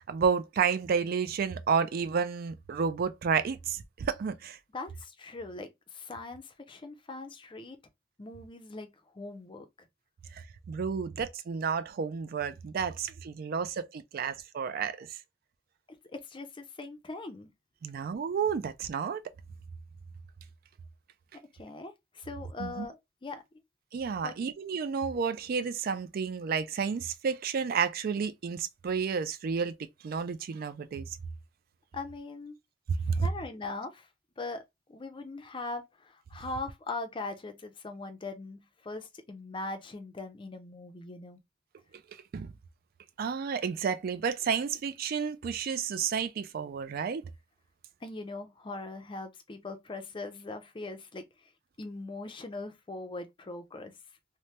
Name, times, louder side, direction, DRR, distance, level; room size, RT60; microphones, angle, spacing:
voice 1, 0.1-4.6 10.3-15.2 17.8-19.2 22.6-22.9 23.9-29.8 30.0-31.2 33.1-33.3 42.3-42.5 43.2-47.3, right 6 dB, 50° right, 0.3 m, -31 dB
voice 2, 4.7-7.8 8.2-8.9 9.1-9.7 16.1-17.5 21.5-23.4 24.2-24.5 31.9-32.6 33.2-34.1 34.4-34.6 34.9-41.4 48.0-51.5 51.8-53.9, left 3 dB, 25° left, 0.5 m, -41 dB
3.2 x 2.1 x 2.8 m
head